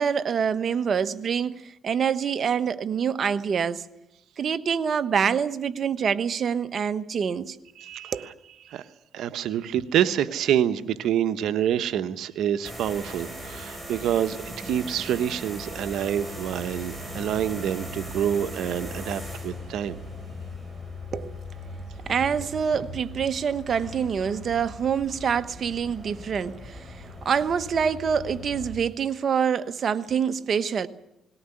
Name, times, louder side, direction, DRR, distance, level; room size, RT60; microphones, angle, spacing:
voice 1, 0.0-3.8 4.4-7.6 8.1-8.3 21.1-21.4 22.1-26.9 27.2-30.9, right 7 dB, 50° right, 1.1 m, -26 dB
voice 2, 7.8-8.3 8.6-8.9 9.1-20.0, right 10 dB, 80° right, 1.0 m, -27 dB
sound 1, 12.6-28.7, left 1 dB, 10° right, 6.0 m, -39 dB
19.5 x 17.0 x 9.9 m
cardioid pair, 90°, 0 cm